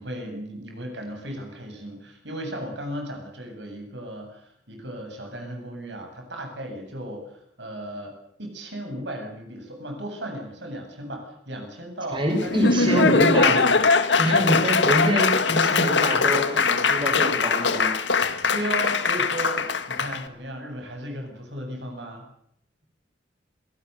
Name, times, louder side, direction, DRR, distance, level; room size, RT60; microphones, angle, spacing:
voice 1, 0.0-8.1 8.4-13.5 18.5-22.2, equal, 70° right, 4 dB, 8.0 m, -35 dB
voice 2, 12.1-13.6 14.2-17.9, equal, 25° right, 2 dB, 6.0 m, -25 dB
Laughter / Applause, 12.3-20.2, left 4 dB, 75° left, 1.8 m, -21 dB
27.5 x 18.5 x 6.8 m, 0.72 s
head